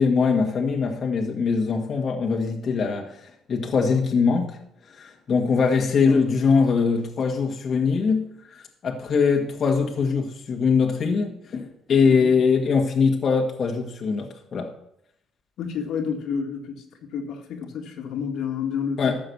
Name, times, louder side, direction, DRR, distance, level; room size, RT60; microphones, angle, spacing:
voice 1, 0.0-3.1 3.5-4.6 5.0-14.7 19.0-19.2, left 5 dB, 45° left, 1 dB, 1.9 m, -22 dB
voice 2, 15.6-16.8 17.1-19.2, left 6 dB, 75° left, 3 dB, 2.2 m, -29 dB
13.0 x 7.5 x 7.0 m, 0.75 s
cardioid pair, 115°, 0 cm